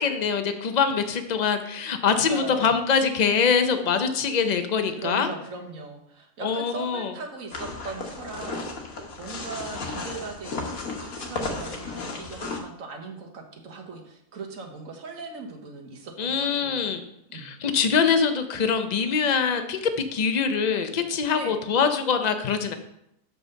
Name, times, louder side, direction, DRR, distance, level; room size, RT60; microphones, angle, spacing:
voice 1, 0.0-5.3 6.4-7.1 16.2-17.0 17.3-22.7, left 6 dB, 45° left, 7 dB, 0.5 m, -24 dB
voice 2, 2.1-2.8 5.0-16.9 17.3-17.5 21.3-21.5, right 4 dB, 65° right, 2 dB, 1.5 m, -39 dB
sound 1, 7.5-12.6, left 3 dB, 70° left, 1.5 m, -34 dB
5.8 x 5.3 x 6.5 m, 0.78 s
omnidirectional pair, 1.5 m